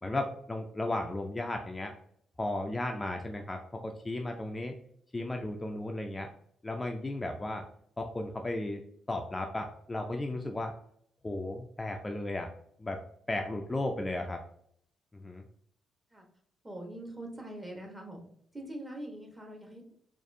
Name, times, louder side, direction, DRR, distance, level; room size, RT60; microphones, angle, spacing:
voice 1, 0.0-1.9 2.4-4.8 5.1-6.3 6.6-7.6 8.0-8.8 9.1-10.7 11.2-12.5 12.8-13.0 13.3-14.4 15.1-15.4, left 2 dB, 20° left, 3 dB, 0.4 m, -35 dB
voice 2, 16.6-18.2 18.5-19.9, right 1 dB, 15° right, 1 dB, 1.1 m, -43 dB
4.0 x 2.5 x 2.6 m, 0.66 s
figure-of-eight pair, 40°, 0 cm